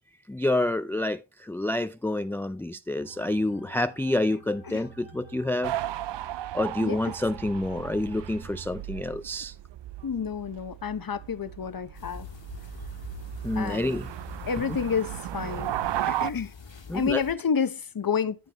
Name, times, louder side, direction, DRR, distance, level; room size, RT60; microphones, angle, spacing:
voice 1, 0.3-5.7 6.5-9.5 13.4-14.1 16.9-17.2, left 1 dB, 5° left, 0.3 m, -28 dB
sound 1, 3.0-8.7, right 5 dB, 85° right, 3.2 m, -49 dB
sound 2, 5.6-16.3, right 13 dB, 65° right, 0.5 m, -35 dB
voice 2, 6.8-7.1 10.0-12.3 13.5-14.0 14.5-15.7 16.1-16.5 16.9-18.4, left 6 dB, 50° left, 0.9 m, -29 dB
sound 3, 11.9-17.3, left 5 dB, 70° left, 2.3 m, -44 dB
14.5 x 5.4 x 2.9 m
cardioid pair, 55°, 46 cm